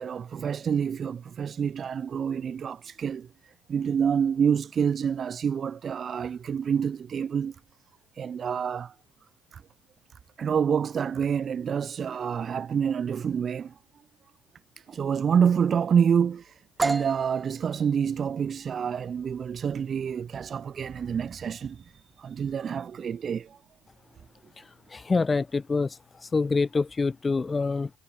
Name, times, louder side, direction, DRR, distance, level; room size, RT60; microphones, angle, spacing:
voice 1, 0.0-7.6 8.1-8.9 9.5-9.6 10.4-13.7 14.8-23.6, right 7 dB, 40° right, 3.9 m, -27 dB
sound 1, 16.8-24.4, right 3 dB, 20° right, 2.4 m, -37 dB
voice 2, 24.6-27.9, left 4 dB, 25° left, 2.1 m, -26 dB
supercardioid pair, 85°, 0 cm